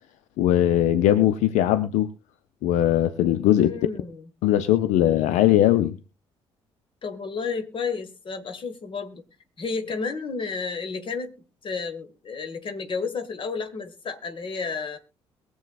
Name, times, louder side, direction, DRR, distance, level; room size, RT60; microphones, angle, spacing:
voice 1, 0.4-2.1 2.6-3.7 4.4-5.9, left 12 dB, 60° left, 12 dB, 0.6 m, -20 dB
voice 2, 3.4-4.3 7.0-9.2 9.6-15.0, left 4 dB, 35° left, 9 dB, 1.5 m, -32 dB
22.5 x 8.0 x 2.4 m, 0.32 s
figure-of-eight pair, 45°, 14 cm